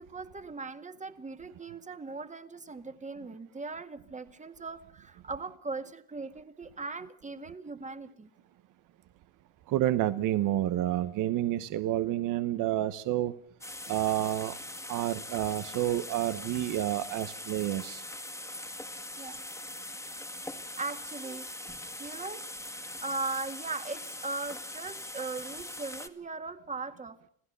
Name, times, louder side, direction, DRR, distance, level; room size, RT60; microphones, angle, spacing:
voice 1, 0.0-8.3 19.2-19.4 20.6-22.5 23.0-27.3, right 3 dB, 20° right, 9 dB, 1.9 m, -39 dB
voice 2, 9.7-13.3 13.9-14.6 14.9-18.0, right 13 dB, 60° right, 13 dB, 1.0 m, -29 dB
sound 1, 13.6-26.1, left 1 dB, 10° left, 1.9 m, -42 dB
27.0 x 16.0 x 6.7 m, 0.68 s
supercardioid pair, 85°, 35 cm